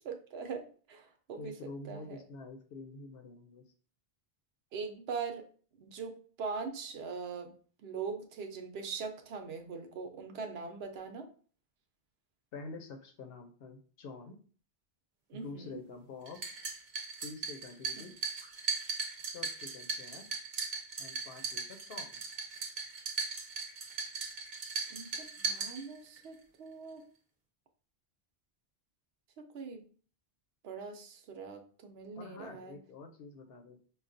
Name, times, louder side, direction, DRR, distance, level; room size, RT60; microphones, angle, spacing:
voice 1, 0.0-1.5 1.9-2.2 4.7-5.5 5.8-7.5 7.8-11.3 15.3-15.8 24.9-27.0 29.5-29.8 30.6-32.7, right 5 dB, 80° right, 6 dB, 0.9 m, -41 dB
voice 2, 1.4-3.6 12.5-14.3 15.3-16.4 17.2-18.1 19.3-20.3 21.0-21.6 21.9-22.2 32.1-33.8, left 3 dB, 70° left, 4 dB, 0.8 m, -47 dB
sound 1, 16.3-26.2, right 4 dB, 50° right, 0.8 m, -38 dB
5.2 x 2.3 x 2.5 m, 0.42 s
omnidirectional pair, 1.1 m